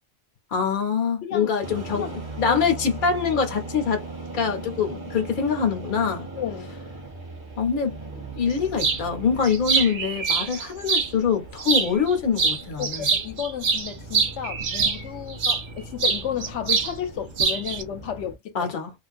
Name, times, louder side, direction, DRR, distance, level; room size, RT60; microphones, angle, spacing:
voice 1, 0.5-4.0 4.3-6.3 7.6-8.0 8.4-13.1 18.5-18.9, left 6 dB, 50° left, 0.8 m, -24 dB
voice 2, 1.2-1.5 1.9-2.6 6.4-6.7 12.8-18.7, left 9 dB, 85° left, 0.9 m, -33 dB
sound 1, 1.6-18.4, right 3 dB, 25° right, 0.9 m, -39 dB
sound 2, 8.8-9.0 9.4-11.1 11.6-12.1 12.4-15.6 16.0-16.9 17.2-17.8, right 5 dB, 55° right, 0.9 m, -24 dB
2.4 x 2.3 x 2.4 m
omnidirectional pair, 1.2 m